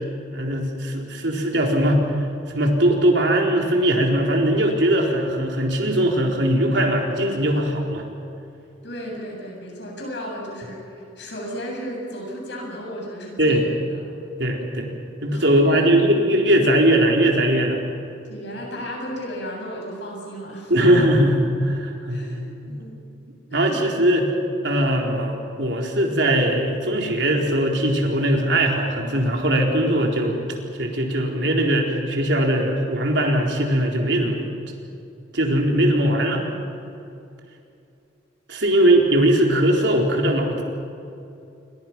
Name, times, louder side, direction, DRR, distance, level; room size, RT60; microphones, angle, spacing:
voice 1, 0.3-2.0 2.5-8.0 13.4-13.6 14.4-14.9 15.2-17.8 20.7-22.2 22.6-22.8 23.5-24.3 24.6-30.4 30.8-34.5 35.3-36.4 38.5-40.6, right 1 dB, 65° right, 1 dB, 3.9 m, -20 dB
voice 2, 8.8-14.1 15.3-15.9 18.3-20.7 22.1-23.0 23.5-24.0 24.7-24.9 38.6-39.0, equal, 65° left, -1 dB, 7.9 m, -34 dB
29.0 x 23.5 x 6.0 m, 2.6 s
head